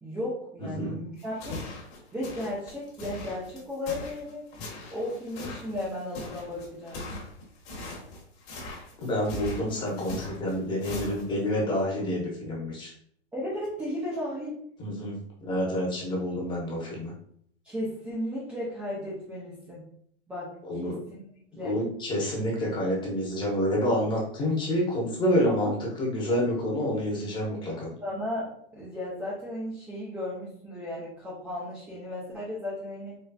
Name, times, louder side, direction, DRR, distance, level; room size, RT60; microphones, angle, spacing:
voice 1, 0.0-1.6 2.1-4.4 4.9-7.1 13.3-14.5 17.6-19.8 20.3-20.5 20.8-21.2 21.5-21.8 25.5-25.7 28.0-33.2, left 1 dB, 5° right, -7 dB, 0.4 m, -35 dB
sound 1, 1.2-11.5, left 2 dB, 35° left, 1.1 m, -40 dB
voice 2, 9.0-12.9 14.8-17.1 20.6-21.0 21.6-27.9, equal, 15° left, -3 dB, 0.9 m, -28 dB
4.1 x 3.1 x 2.2 m, 0.66 s
supercardioid pair, 155°, 34 cm